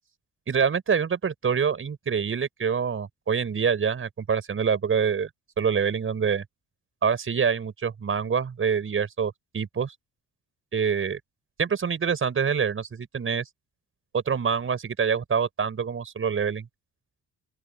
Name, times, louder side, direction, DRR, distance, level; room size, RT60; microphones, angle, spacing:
voice 1, 0.5-5.3 5.6-6.4 7.0-9.9 10.7-11.2 11.6-13.4 14.1-16.7, right 6 dB, 45° right, 6.3 m, -26 dB
open air
cardioid pair, 90°, 30 cm